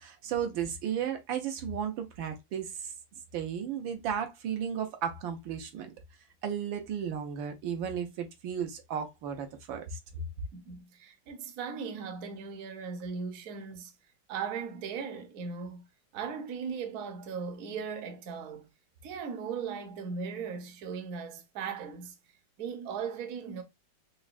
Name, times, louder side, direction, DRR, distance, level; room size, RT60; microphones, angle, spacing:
voice 1, 0.0-2.9 3.3-5.9 6.4-10.0, right 8 dB, 85° right, 1.5 m, -34 dB
voice 2, 10.5-13.9 14.3-15.9 16.1-18.7 19.0-22.1 22.6-23.6, right 6 dB, 60° right, 1.0 m, -38 dB
5.8 x 2.2 x 2.4 m
omnidirectional pair, 2.1 m